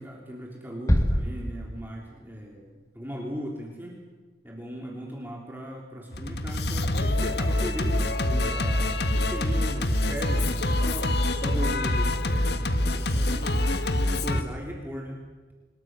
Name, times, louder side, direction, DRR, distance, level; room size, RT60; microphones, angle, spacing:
voice 1, 0.0-4.0 4.4-13.5 14.0-15.2, equal, 10° right, -1 dB, 3.5 m, -38 dB
sound 1, 0.9-2.3, equal, 15° left, 2.1 m, -26 dB
Singing, 6.1-14.4, left 1 dB, 60° left, 1.7 m, -25 dB
26.5 x 22.5 x 6.4 m, 1.3 s
head